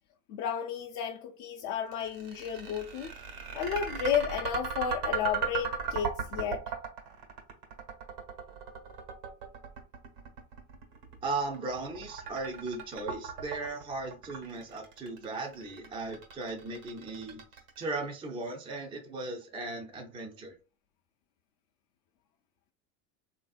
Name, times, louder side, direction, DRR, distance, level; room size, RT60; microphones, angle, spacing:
voice 1, 0.3-3.1 3.5-6.6, left 8 dB, 50° left, 0.5 m, -32 dB
sound 1, 1.9-18.0, right 6 dB, 85° right, 1.2 m, -37 dB
voice 2, 11.2-17.4 17.8-20.6, right 3 dB, 15° right, 0.4 m, -37 dB
3.2 x 2.6 x 2.3 m
supercardioid pair, 110°, 45 cm